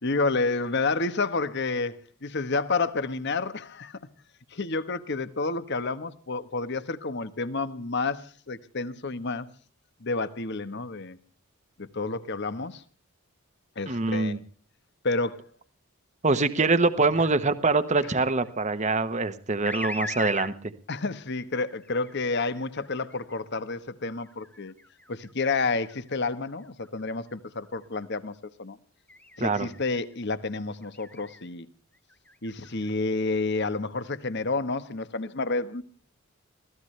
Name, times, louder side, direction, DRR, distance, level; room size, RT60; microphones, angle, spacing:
voice 1, 0.0-4.0 4.5-9.5 10.0-11.2 11.8-12.8 13.8-14.4 15.0-15.5 18.1-18.2 20.9-24.7 25.1-28.8 29.4-31.7 32.4-35.8, left 3 dB, 50° left, 1.2 m, -30 dB
voice 2, 13.9-14.4 16.2-20.5 29.4-29.7, right 3 dB, 35° right, 1.1 m, -24 dB
sound 1, 17.9-18.6 19.7-20.5 21.5-23.4 24.1-27.4 27.8-28.2 29.1-30.0 30.8-31.5 32.0-32.9, left 1 dB, 5° left, 0.9 m, -41 dB
24.0 x 17.0 x 3.3 m
head